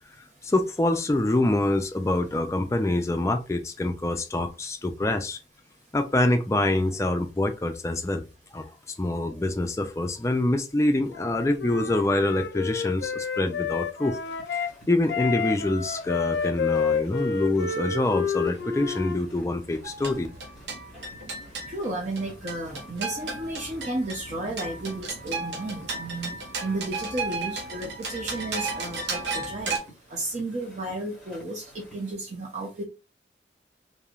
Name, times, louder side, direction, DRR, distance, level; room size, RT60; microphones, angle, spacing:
voice 1, 0.4-5.4 5.9-8.2 8.5-8.7 9.0-14.2 14.5-20.3, left 2 dB, 15° left, 5 dB, 0.3 m, -25 dB
Wind instrument woodwind instrument, 11.1-14.7 15.1-19.2, left 6 dB, 80° left, 0.4 m, -29 dB
Piston Loop, 14.2-32.1, equal, 5° right, 1.7 m, -53 dB
sound 1, 19.8-29.8, right 3 dB, 80° right, 0.8 m, -34 dB
voice 2, 21.7-26.3 26.6-29.8 30.1-31.6 31.9-32.8, right 2 dB, 40° right, -1 dB, 0.6 m, -33 dB
3.1 x 2.6 x 2.4 m, 0.29 s
head